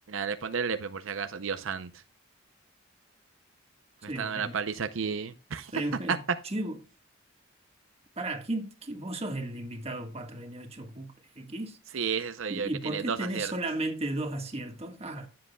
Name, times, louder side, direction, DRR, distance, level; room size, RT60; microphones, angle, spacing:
voice 1, 0.1-1.9 4.2-5.7 6.1-6.2 11.9-13.5, right 6 dB, 75° right, 0.6 m, -32 dB
voice 2, 4.1-4.6 5.7-6.8 8.2-11.8 12.5-15.3, right 1 dB, 30° right, 1.5 m, -35 dB
15.5 x 7.7 x 2.3 m
head